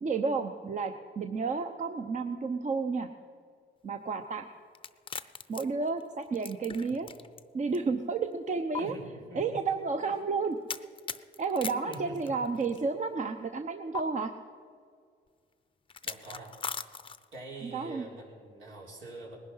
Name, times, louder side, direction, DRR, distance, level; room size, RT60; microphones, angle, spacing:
voice 1, 0.0-3.1 3.8-4.4 5.5-7.1 7.5-8.9 9.4-10.6 11.4-14.3 17.7-18.0, right 4 dB, 40° right, 7 dB, 0.8 m, -31 dB
sound 1, 4.8-7.4 7.7-7.8 8.7-8.8 10.7-12.8 13.9-14.0 15.9-17.4, left 5 dB, 25° left, 0.6 m, -39 dB
voice 2, 8.8-9.6 10.0-10.1 11.9-12.5 16.0-16.6 17.3-19.4, right 2 dB, 80° right, -2 dB, 4.1 m, -45 dB
19.5 x 11.0 x 5.6 m, 2.1 s
cardioid pair, 90°, 20 cm